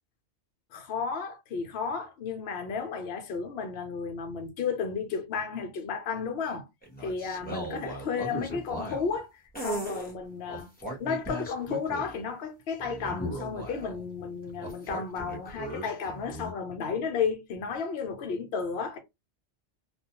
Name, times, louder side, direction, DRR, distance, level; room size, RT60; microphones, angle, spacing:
voice 1, 0.7-6.6 7.0-9.3 9.6-10.7 11.0-19.0, left 5 dB, 65° left, 0.9 m, -33 dB
sound 1, 6.8-9.2 9.5-10.1 10.5-12.2 12.8-14.0 14.6-16.5, right 1 dB, 10° left, 0.9 m, -37 dB
2.4 x 2.2 x 2.8 m
omnidirectional pair, 1.2 m